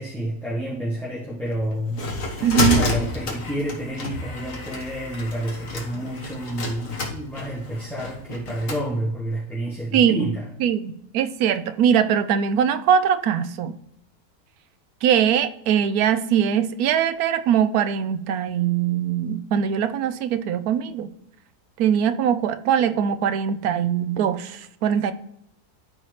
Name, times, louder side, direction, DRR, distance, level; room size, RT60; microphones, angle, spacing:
voice 1, 0.0-2.1 2.7-10.5, right 1 dB, ahead, -7 dB, 1.3 m, -29 dB
sound 1, 1.5-8.8, left 3 dB, 60° left, 1.7 m, -29 dB
voice 2, 2.4-2.8 9.9-10.3 10.6-13.7 15.0-21.1 21.8-25.1, right 8 dB, 75° right, 12 dB, 1.0 m, -21 dB
12.5 x 4.3 x 3.2 m, 0.74 s
omnidirectional pair, 1.6 m